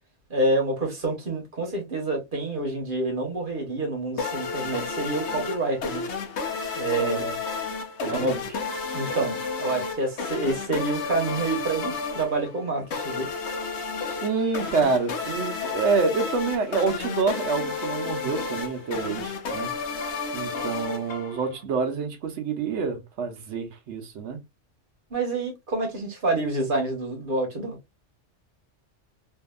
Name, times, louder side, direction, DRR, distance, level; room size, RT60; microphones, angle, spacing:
voice 1, 0.3-6.1 6.7-7.2 8.1-8.4 8.9-13.3 25.1-27.8, right 2 dB, 45° right, 1.1 m, -27 dB
sound 1, 4.2-21.6, left 4 dB, 70° left, 0.9 m, -32 dB
voice 2, 7.0-7.3 8.0-8.4 14.1-19.7 20.3-24.4, right 4 dB, 70° right, 1.0 m, -27 dB
2.7 x 2.7 x 2.2 m
omnidirectional pair, 1.3 m